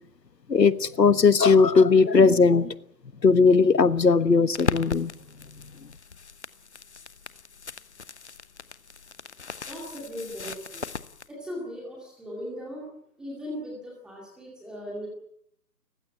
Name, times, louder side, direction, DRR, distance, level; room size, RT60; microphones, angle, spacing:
voice 1, 0.5-2.7 3.2-5.1, left 4 dB, 85° left, 1.5 m, -18 dB
sound 1, 4.5-11.3, left 5 dB, 45° left, 1.0 m, -37 dB
voice 2, 9.7-10.8 11.3-12.9 13.2-15.1, equal, ahead, 2.3 m, -38 dB
29.5 x 16.0 x 8.8 m
figure-of-eight pair, 165°, 48 cm